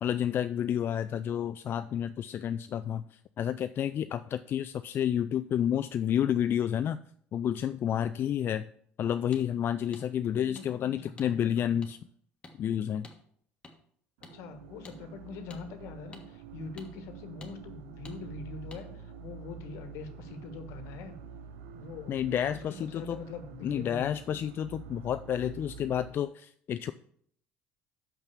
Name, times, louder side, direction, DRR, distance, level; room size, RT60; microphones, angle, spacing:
voice 1, 0.0-7.0 7.3-8.6 9.0-12.0 12.6-13.1 22.1-23.2 23.6-26.9, left 10 dB, 50° left, 10 dB, 0.3 m, -30 dB
sound 1, 9.3-9.4 9.9-10.1 10.6-10.7 11.2-11.3 11.8-11.9 12.4-12.6 13.0-13.2 13.6-13.7 14.2-14.4 14.8-15.0 15.5-15.6 16.1-16.3 16.8-16.9 17.4-17.5 18.1-18.2 18.7-18.8, left 2 dB, 20° left, 1.5 m, -49 dB
voice 2, 10.3-11.7 14.3-21.2 21.7-22.2 22.5-24.4, left 4 dB, 75° left, 8 dB, 1.2 m, -43 dB
sound 2, 14.2-26.1, right 6 dB, 90° right, 0.6 m, -47 dB
6.0 x 5.6 x 7.0 m, 0.63 s
supercardioid pair, 90°, 5 cm